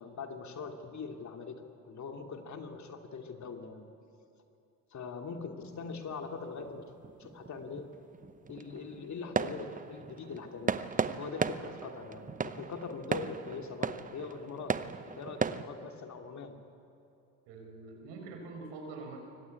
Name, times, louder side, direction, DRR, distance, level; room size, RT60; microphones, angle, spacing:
voice 1, 0.0-3.9 4.9-6.9 7.2-7.9 8.5-10.8 11.2-14.8 15.1-16.6, left 5 dB, 35° left, 4 dB, 3.0 m, -42 dB
sound 1, 5.6-15.7, right 5 dB, 15° right, 0.8 m, -37 dB
voice 2, 17.5-19.2, right 3 dB, 65° right, 2 dB, 5.5 m, -44 dB
24.0 x 19.5 x 8.6 m, 2.6 s
hypercardioid pair, 80°, 46 cm